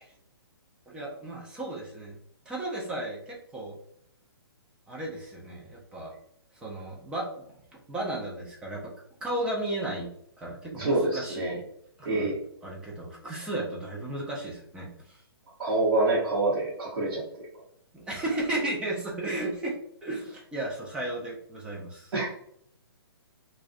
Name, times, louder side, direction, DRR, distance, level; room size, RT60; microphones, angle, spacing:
voice 1, 0.9-2.1 2.5-3.7 4.9-6.1 6.6-7.4 7.7-8.8 9.2-10.1 10.4-11.7 12.0-12.4 12.6-15.2 17.9-19.7 20.0-22.1, right 1 dB, 5° right, -3 dB, 0.3 m, -34 dB
voice 2, 10.7-11.6 12.0-12.4 15.6-17.2 22.1-22.2, right 2 dB, 65° right, -7 dB, 0.8 m, -26 dB
2.5 x 2.1 x 2.3 m, 0.71 s
hypercardioid pair, 145°, 13 cm